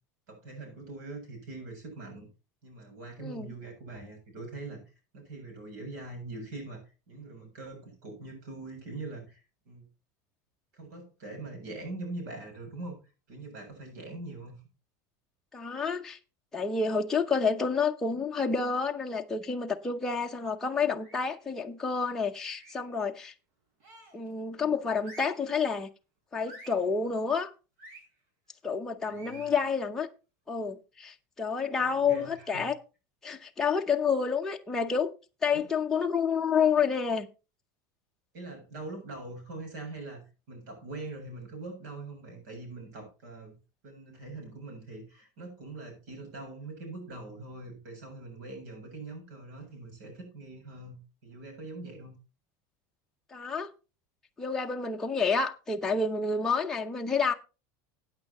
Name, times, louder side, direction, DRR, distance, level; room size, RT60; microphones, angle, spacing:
voice 1, 0.3-2.3 2.6-4.8 5.1-6.8 7.1-9.4 9.7-9.8 10.7-13.0 13.3-14.6 29.1-29.6 31.8-32.7 35.5-35.7 38.3-43.6 43.8-52.1, right 2 dB, 75° right, 7.5 m, -43 dB
voice 2, 3.2-3.5 15.5-16.2 16.5-23.3 24.1-25.9 26.3-27.5 28.6-30.1 30.5-32.7 33.2-35.1 35.4-37.3 53.3-53.7 54.4-57.3, left 5 dB, 5° left, 0.7 m, -29 dB
sound 1, 21.0-21.5 22.5-22.9 23.8-24.3 25.0-25.5 26.5-26.9 27.8-28.1 29.1-29.6, right 2 dB, 60° right, 6.5 m, -50 dB
15.5 x 8.9 x 3.0 m
supercardioid pair, 175°, 9 cm